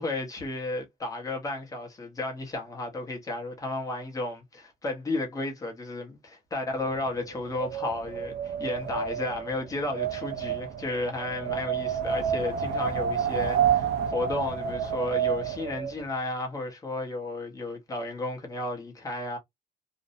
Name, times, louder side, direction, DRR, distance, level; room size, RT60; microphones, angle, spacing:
voice 1, 0.0-19.4, left 2 dB, 20° left, 0.7 m, -33 dB
Wind, 6.8-16.0, right 7 dB, 80° right, 0.5 m, -29 dB
2.5 x 2.0 x 2.5 m
cardioid pair, 175°, 17 cm